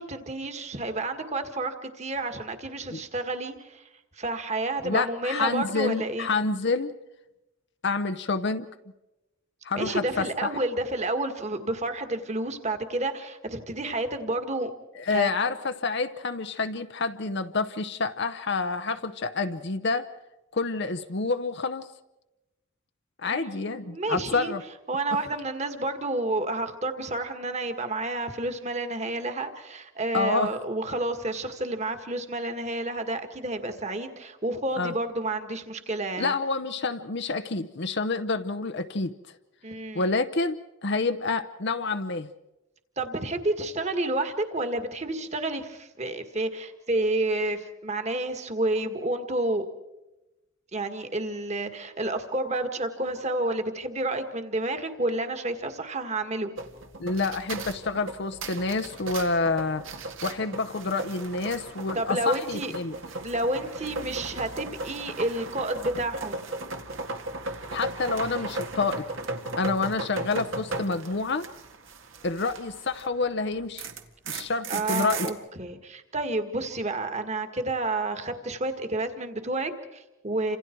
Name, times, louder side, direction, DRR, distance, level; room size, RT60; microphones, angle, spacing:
voice 1, 0.0-3.8 4.2-6.3 9.7-14.7 15.1-15.3 23.2-24.5 24.9-36.3 39.6-40.1 43.0-49.7 50.7-56.5 61.9-62.7 63.2-66.4 74.7-80.6, right 2 dB, 35° right, 7 dB, 1.9 m, -30 dB
voice 2, 4.8-6.9 7.8-8.7 9.6-10.5 15.0-20.1 20.5-21.9 23.2-24.6 30.1-30.5 34.8-34.9 36.2-39.1 39.9-42.3 57.0-59.8 60.2-63.0 67.7-69.0 69.6-71.5 72.2-73.9 74.3-75.3, left 3 dB, 55° left, 7 dB, 0.8 m, -28 dB
sound 1, 56.6-73.1 73.4-75.3, right 2 dB, 70° right, 2.1 m, -36 dB
29.0 x 26.5 x 4.6 m, 0.99 s
head